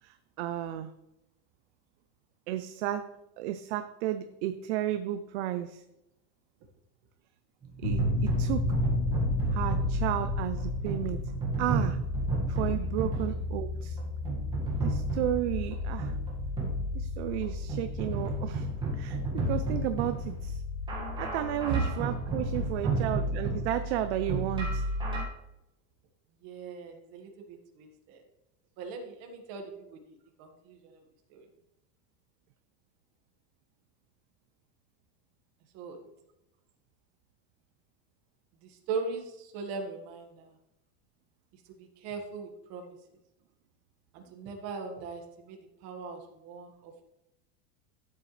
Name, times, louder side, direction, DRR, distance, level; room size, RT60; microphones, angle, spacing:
voice 1, 0.0-0.9 2.5-5.8 7.8-8.7 9.5-11.2 11.6-12.0 12.5-14.0 14.8-16.1 16.9-18.7 18.9-20.6 21.2-24.8, right 12 dB, 55° right, 10 dB, 0.6 m, -33 dB
sound 1, 7.6-25.2, right 1 dB, 10° right, 1.8 m, -33 dB
sound 2, 7.8-22.8, left 2 dB, 65° left, 2.9 m, -34 dB
voice 2, 26.4-28.2 28.8-31.0 31.3-31.4 35.7-36.0 38.6-40.5 41.8-42.9 44.1-45.6 45.8-47.0, right 5 dB, 40° right, 3 dB, 1.7 m, -39 dB
13.0 x 7.8 x 3.3 m, 0.89 s
supercardioid pair, 180°, 39 cm